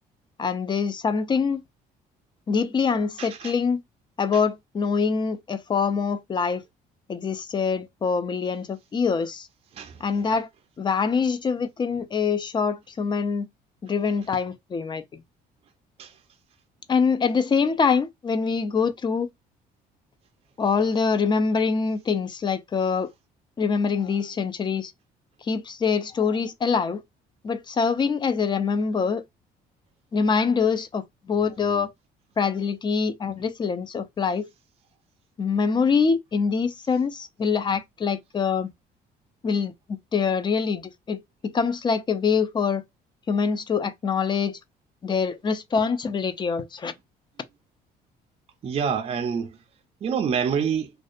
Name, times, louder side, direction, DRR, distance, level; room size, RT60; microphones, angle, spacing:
voice 1, 0.4-1.6 2.5-3.8 4.2-6.6 7.1-9.5 10.0-10.5 10.8-13.5 13.8-15.2 16.9-19.3 20.6-23.1 23.6-24.9 25.4-27.0 27.4-29.2 30.1-31.9 32.4-34.5 35.4-38.7 39.4-39.7 40.1-42.8 43.3-44.6 45.0-46.9, left 5 dB, 25° left, 0.4 m, -24 dB
voice 2, 3.2-3.5 9.7-10.0 16.0-16.1 48.6-49.6 50.0-50.9, right 7 dB, 35° right, 0.4 m, -26 dB
2.5 x 2.2 x 2.4 m
cardioid pair, 110°, 17 cm